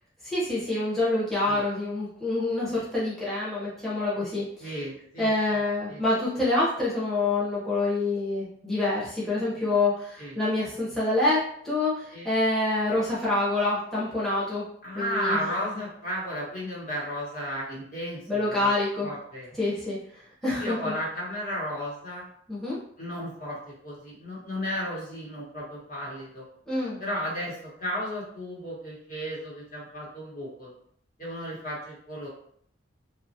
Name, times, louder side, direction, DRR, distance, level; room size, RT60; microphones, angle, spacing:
voice 1, 0.2-4.7 5.2-14.6 14.9-15.5 18.3-19.1 19.6-20.0 20.4-20.9 22.5-22.8 26.7-27.0, left 2 dB, ahead, -8 dB, 0.7 m, -26 dB
voice 2, 4.6-5.6 5.9-6.0 10.2-10.4 12.1-12.3 14.8-18.7 19.0-19.5 20.6-22.3 23.0-26.4 27.0-30.7 31.2-32.3, equal, 45° left, -5 dB, 1.1 m, -34 dB
3.0 x 2.3 x 2.7 m, 0.65 s
head